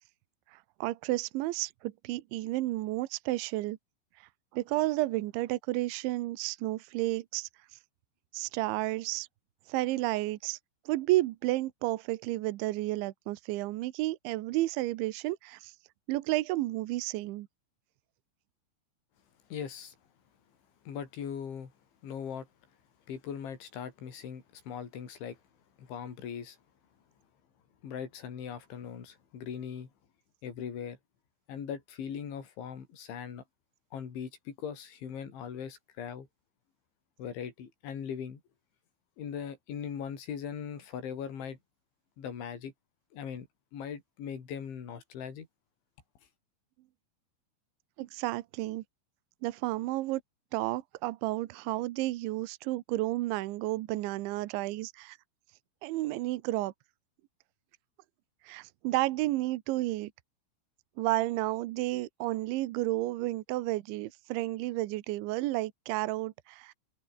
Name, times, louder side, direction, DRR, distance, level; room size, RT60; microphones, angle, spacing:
voice 1, 0.5-3.8 4.2-7.5 8.3-9.3 9.7-10.6 10.9-15.7 16.1-17.5 48.0-48.8 49.4-50.2 50.5-55.2 55.8-56.7 58.4-60.1 61.0-66.7, right 18 dB, 75° right, 3.3 m, -32 dB
voice 2, 19.5-20.0 20.9-21.7 22.0-22.5 23.1-25.4 25.8-26.6 27.8-29.9 30.4-31.0 31.5-33.4 33.9-36.3 37.2-38.4 39.2-41.6 42.2-42.7 43.1-43.5 43.7-45.5, left 7 dB, 70° left, 6.7 m, -40 dB
omnidirectional pair, 5.6 m